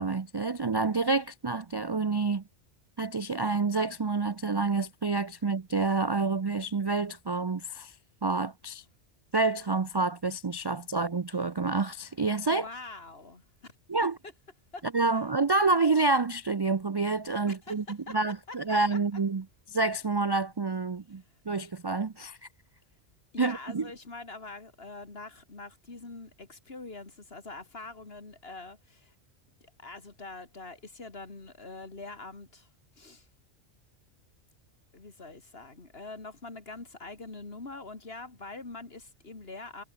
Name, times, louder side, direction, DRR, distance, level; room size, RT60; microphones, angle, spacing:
voice 1, 0.0-2.4 3.0-7.9 8.2-8.8 9.3-12.7 13.9-14.1 14.9-22.5 23.4-23.9, right 3 dB, 40° right, 0.4 m, -28 dB
voice 2, 12.5-13.4 14.0-14.1 14.7-14.9 17.5-19.0 23.3-29.1 29.6-32.7 33.0-33.3 34.9-39.8, left 3 dB, 55° left, 3.1 m, -44 dB
omnidirectional pair, 1.2 m